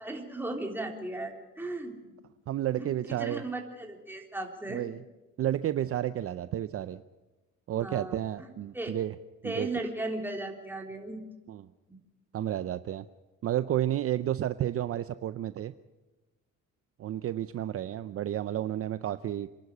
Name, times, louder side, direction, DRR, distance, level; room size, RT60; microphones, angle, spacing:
voice 1, 0.0-2.1 2.8-4.8 7.8-8.9 9.4-11.2 11.9-12.0, right 2 dB, 5° right, 2 dB, 3.5 m, -37 dB
voice 2, 2.5-3.4 4.7-5.0 5.4-7.0 7.7-9.1 9.4-9.7 11.5-11.7 12.3-13.1 13.4-15.7 17.0-19.5, right 12 dB, 45° right, 13 dB, 0.6 m, -31 dB
28.0 x 11.5 x 8.4 m, 1.1 s
cardioid pair, 120°, 31 cm